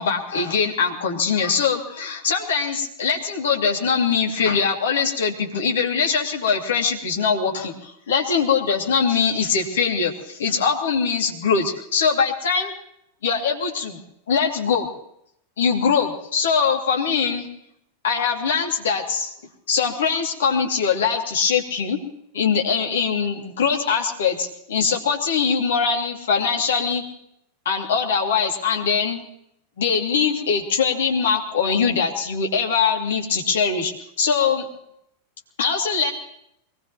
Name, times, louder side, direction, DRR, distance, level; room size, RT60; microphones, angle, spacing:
voice 1, 0.0-12.7 13.2-14.0 14.3-14.9 15.6-17.5 18.0-19.3 19.7-22.0 22.3-27.0 27.6-29.2 29.8-33.9 34.2-34.7 35.6-36.1, left 6 dB, 60° left, 1 dB, 2.6 m, -22 dB
23.5 x 19.0 x 3.1 m, 0.75 s
figure-of-eight pair, 90°, 0 cm